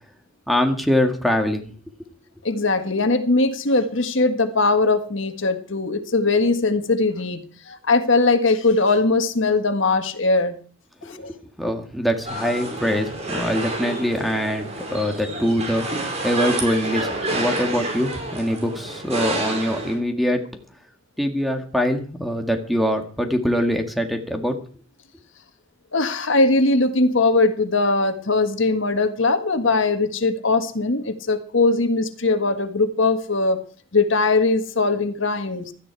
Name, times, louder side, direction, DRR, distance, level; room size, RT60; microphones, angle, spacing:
voice 1, 0.5-1.7 11.0-20.6 21.2-24.6, equal, ahead, 4 dB, 1.9 m, -23 dB
voice 2, 2.4-7.4 7.7-10.6 11.0-11.3 25.9-33.6 33.9-35.7, left 3 dB, 65° left, 8 dB, 1.6 m, -20 dB
sound 1, 12.3-20.0, right 2 dB, 30° right, 4.9 m, -29 dB
17.0 x 13.5 x 4.7 m, 0.41 s
head